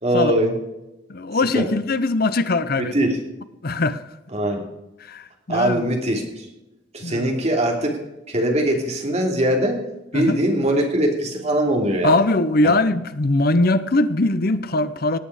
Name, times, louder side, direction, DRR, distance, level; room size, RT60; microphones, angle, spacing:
voice 1, 0.0-0.5 1.5-1.7 2.9-3.2 4.3-4.6 5.5-6.4 6.9-8.0 8.3-9.8 10.1-12.2 12.6-12.7, right 1 dB, 40° right, 3.1 m, -21 dB
voice 2, 1.1-3.0 3.6-4.0 5.0-5.8 7.0-7.3 10.1-10.4 12.0-15.2, left 2 dB, 55° left, 0.8 m, -21 dB
18.0 x 8.7 x 5.1 m
head